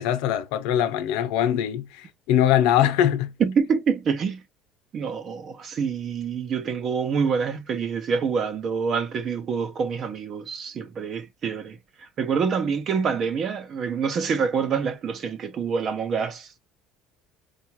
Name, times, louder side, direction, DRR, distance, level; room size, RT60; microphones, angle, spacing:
voice 1, 0.0-3.3, left 11 dB, 80° left, 0.8 m, -22 dB
voice 2, 3.4-4.4 4.9-16.5, right 6 dB, 35° right, 0.7 m, -26 dB
4.5 x 2.5 x 2.8 m
cardioid pair, 160°, 0 cm